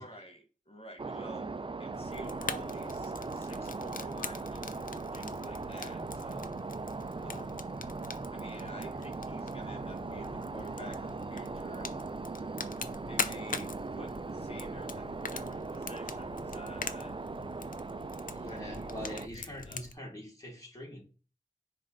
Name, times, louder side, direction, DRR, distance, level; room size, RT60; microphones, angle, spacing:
voice 1, 0.0-6.5 7.2-7.6 8.3-12.1 13.1-17.2 18.5-19.8, right 1 dB, 45° left, 3 dB, 1.8 m, -50 dB
sound 1, 1.0-19.3, right 3 dB, 40° right, 0.4 m, -39 dB
Fire, 1.9-19.9, left 4 dB, 85° left, 0.5 m, -43 dB
voice 2, 12.8-13.1 18.3-21.0, equal, 25° left, -2 dB, 3.0 m, -44 dB
9.8 x 3.3 x 3.9 m, 0.37 s
wide cardioid pair, 40°, 14 cm